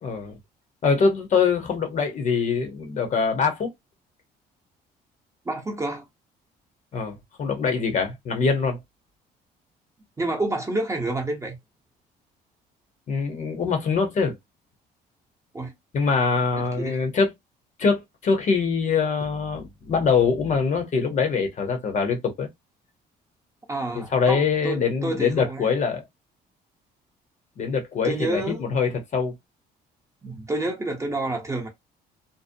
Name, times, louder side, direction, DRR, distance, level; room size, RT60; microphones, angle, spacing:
voice 1, 0.0-0.4 0.8-3.7 6.9-8.8 13.1-14.4 15.9-17.3 17.8-22.5 23.9-26.0 27.6-29.3, left 5 dB, 45° left, 0.8 m, -23 dB
voice 2, 5.4-6.0 10.2-11.6 15.5-15.7 16.8-17.0 23.7-25.7 28.0-28.6 30.2-31.7, right 2 dB, 15° right, 0.8 m, -28 dB
2.6 x 2.0 x 2.6 m
cardioid pair, 110°, 17 cm